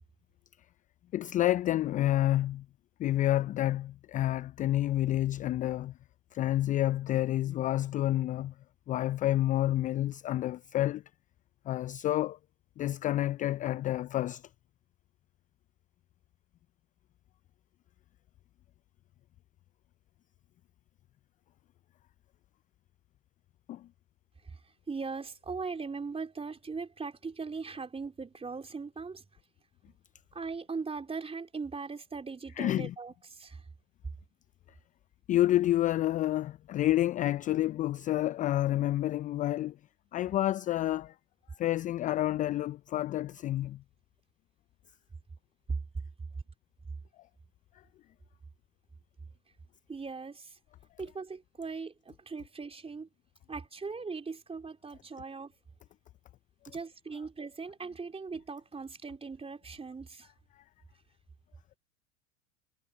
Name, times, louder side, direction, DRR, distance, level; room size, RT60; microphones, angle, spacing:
voice 1, 1.1-2.7 3.0-5.9 6.3-8.5 8.9-11.0 11.7-12.4 12.8-14.4 23.7-23.9 32.6-32.9 35.3-39.8 40.1-41.1 41.6-43.8, left 14 dB, 20° left, 0.4 m, -29 dB
voice 2, 24.4-29.2 30.3-33.6 45.7-45.8 49.9-50.6 51.0-53.1 53.5-55.5 56.7-60.3, right 4 dB, 15° right, 4.1 m, -39 dB
hypercardioid pair, 90°, 37 cm